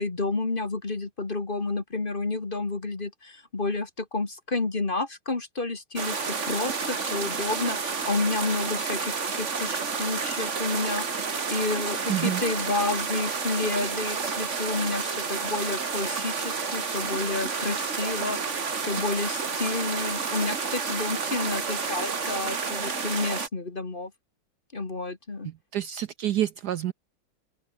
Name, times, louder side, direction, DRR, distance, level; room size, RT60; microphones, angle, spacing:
voice 1, 0.0-24.1 24.7-25.5, left 3 dB, 25° left, 1.8 m, -30 dB
sound 1, 6.0-23.5, right 5 dB, 40° right, 2.0 m, -30 dB
voice 2, 12.1-12.4 25.4-26.9, right 12 dB, 65° right, 1.1 m, -28 dB
open air
omnidirectional pair, 2.1 m